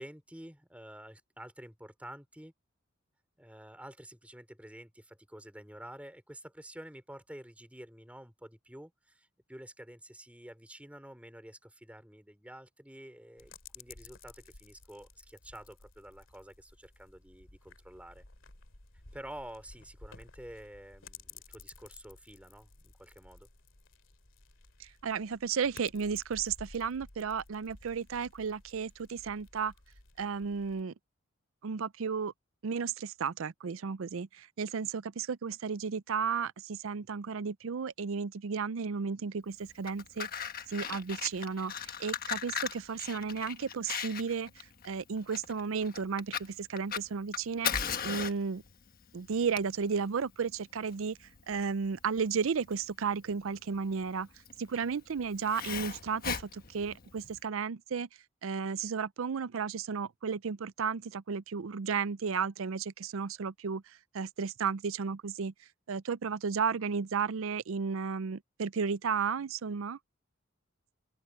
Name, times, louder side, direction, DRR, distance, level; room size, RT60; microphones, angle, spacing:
voice 1, 0.0-2.5 3.4-18.2 19.1-23.5, right 1 dB, 5° right, 3.1 m, -49 dB
sound 1, 13.4-30.8, left 4 dB, 65° left, 2.7 m, -55 dB
voice 2, 24.8-29.7 30.2-30.9 31.6-32.3 32.6-40.3 40.7-47.7 48.0-48.6 49.1-51.2 51.5-54.3 54.6-58.1 58.4-63.8 64.1-65.5 65.9-70.0, right 6 dB, 80° right, 0.5 m, -33 dB
Fire, 39.7-57.4, left 7 dB, 45° left, 1.4 m, -39 dB
open air
head